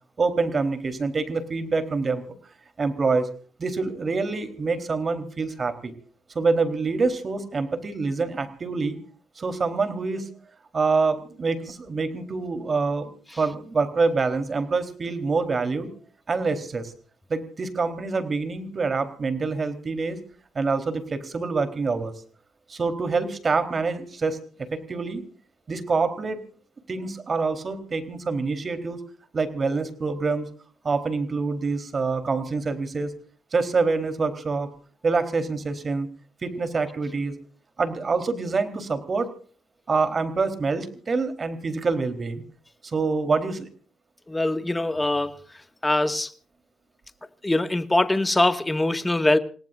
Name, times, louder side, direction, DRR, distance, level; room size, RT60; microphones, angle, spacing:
voice 1, 0.2-2.2 2.8-3.3 3.6-5.9 6.3-9.0 9.4-10.3 10.7-13.1 13.4-15.9 16.3-16.9 17.3-20.2 20.5-22.1 22.7-24.4 24.7-25.2 25.7-26.4 26.9-29.0 29.3-30.5 30.8-33.1 33.5-34.7 35.0-36.1 36.4-37.3 37.8-39.3 39.9-42.4 42.8-43.7, right 4 dB, 35° right, 3.8 m, -26 dB
voice 2, 44.3-45.4 45.8-46.3 47.4-49.4, left 2 dB, 15° left, 1.9 m, -22 dB
29.0 x 18.0 x 2.6 m
cardioid pair, 90°, 0 cm